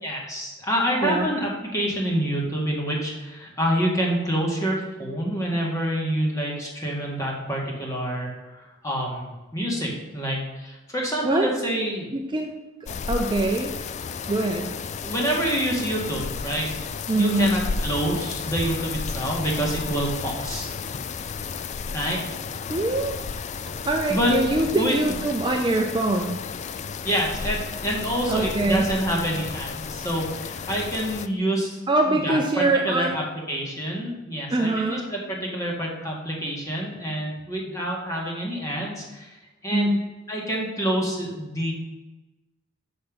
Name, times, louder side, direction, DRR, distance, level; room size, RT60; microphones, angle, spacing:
voice 1, 0.0-12.1 15.0-16.7 17.1-20.7 21.9-22.2 24.1-24.4 24.6-25.1 27.0-31.8 32.1-39.3 39.6-39.9 40.3-41.7, equal, 15° left, -2 dB, 1.8 m, -27 dB
voice 2, 12.1-12.5 12.9-13.7 14.3-14.7 17.1-17.6 22.7-23.2 23.8-26.4 28.3-28.9 31.9-33.2 34.5-35.1 39.7-40.0, right 2 dB, 25° right, 2 dB, 0.5 m, -23 dB
sound 1, 12.9-31.3, left 5 dB, 35° left, 0.3 m, -33 dB
6.7 x 6.4 x 5.2 m, 1.1 s
head